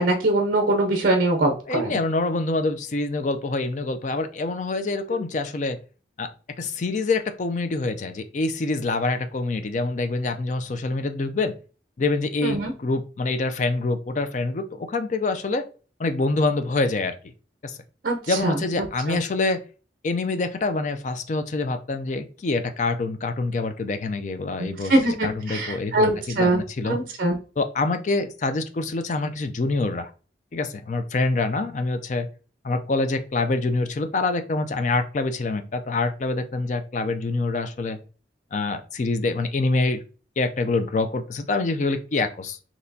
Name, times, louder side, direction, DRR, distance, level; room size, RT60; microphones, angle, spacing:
voice 1, 0.0-1.9 12.4-12.7 18.0-18.2 18.4-18.5 19.1-19.2 24.6-26.6 26.8-27.4, right 2 dB, 50° right, 3 dB, 0.6 m, -22 dB
voice 2, 1.7-5.8 6.2-6.3 6.6-11.5 12.0-15.7 16.0-17.2 17.6-17.8 18.3-19.6 20.0-27.0 27.6-30.1 30.5-32.3 32.6-38.0 38.5-40.0 40.4-42.6, left 3 dB, 40° left, 8 dB, 0.4 m, -26 dB
4.2 x 3.0 x 2.6 m, 0.37 s
head